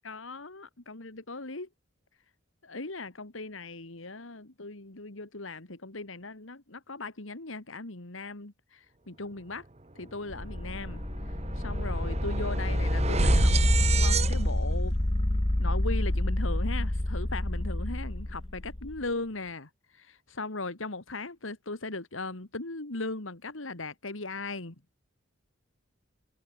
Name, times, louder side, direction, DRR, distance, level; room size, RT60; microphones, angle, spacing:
voice 1, 0.0-1.7 2.6-9.7 9.9-13.5 13.9-15.0 15.6-24.8, left 3 dB, 85° left, 2.4 m, -38 dB
sound 1, 10.0-10.2 10.5-16.7, right 2 dB, 35° right, 1.4 m, -30 dB
sound 2, 10.3-19.1, left 1 dB, 25° left, 1.1 m, -28 dB
open air
head